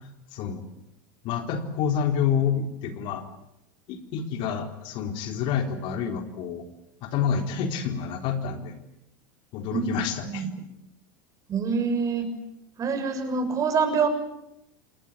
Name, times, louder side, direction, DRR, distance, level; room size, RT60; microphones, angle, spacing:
voice 1, 0.3-0.6 1.2-3.2 3.9-6.7 7.0-8.8 9.5-10.5, left 7 dB, 55° left, 6 dB, 3.8 m, -28 dB
voice 2, 11.5-12.3 12.8-14.1, right 5 dB, 35° right, 7 dB, 6.8 m, -25 dB
27.0 x 20.0 x 9.3 m, 0.82 s
hypercardioid pair, 100°, 10 cm